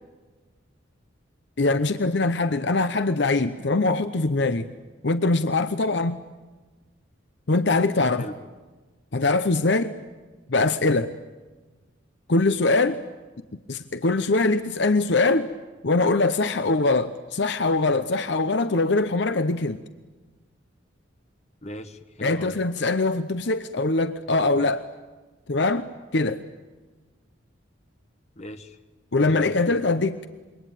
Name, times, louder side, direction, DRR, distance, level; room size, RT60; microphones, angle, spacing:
voice 1, 1.6-4.7 5.0-6.2 7.5-8.2 9.1-10.0 10.5-11.1 12.3-13.0 13.7-15.5 15.8-19.8 22.2-24.9 25.5-25.9 26.1-26.4 29.1-30.3, left 3 dB, 60° left, 11 dB, 0.8 m, -22 dB
voice 2, 21.6-22.6 28.3-28.8 29.2-29.8, equal, 35° left, 8 dB, 1.5 m, -38 dB
27.5 x 23.0 x 9.2 m, 1.3 s
head